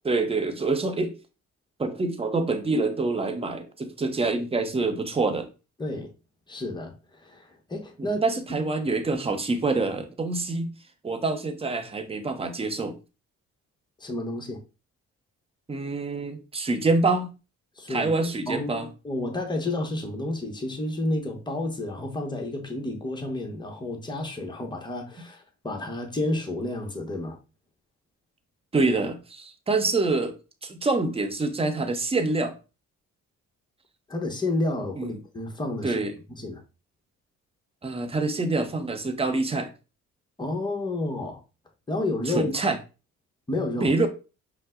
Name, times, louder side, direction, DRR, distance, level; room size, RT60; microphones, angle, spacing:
voice 1, 0.0-1.1 1.8-5.5 8.0-10.7 11.0-13.0 15.7-17.3 17.9-18.9 28.7-30.3 30.6-32.5 35.0-35.1 35.8-36.1 37.8-39.7 42.3-42.8 43.8-44.1, right 3 dB, 20° right, 0.8 m, -26 dB
voice 2, 6.5-8.2 14.0-14.6 17.8-18.1 18.5-27.4 34.1-36.0 36.4-36.6 40.4-41.4 41.9-42.7 43.5-43.9, left 2 dB, 15° left, 1.1 m, -30 dB
5.3 x 2.2 x 3.7 m
cardioid pair, 90°, 30 cm